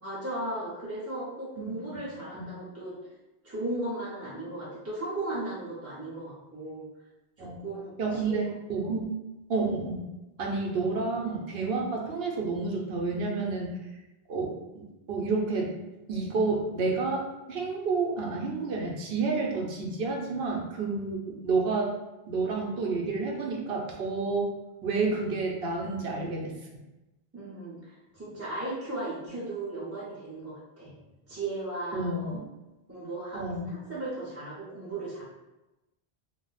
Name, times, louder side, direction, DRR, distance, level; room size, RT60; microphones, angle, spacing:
voice 1, 0.0-2.9 3.4-6.8 7.4-8.3 8.8-8.9 27.3-30.9 31.3-32.4 32.9-35.2, right 2 dB, 20° right, -9 dB, 0.5 m, -36 dB
voice 2, 1.6-2.0 2.3-2.5 7.4-7.6 8.0-8.4 8.7-9.1 9.5-10.1 10.4-13.8 14.3-15.7 16.1-17.2 17.5-21.9 22.3-24.5 24.8-26.5 31.9-32.3 33.3-33.7, right 3 dB, 75° right, -1 dB, 0.9 m, -30 dB
2.4 x 2.0 x 3.9 m, 1.0 s
omnidirectional pair, 1.1 m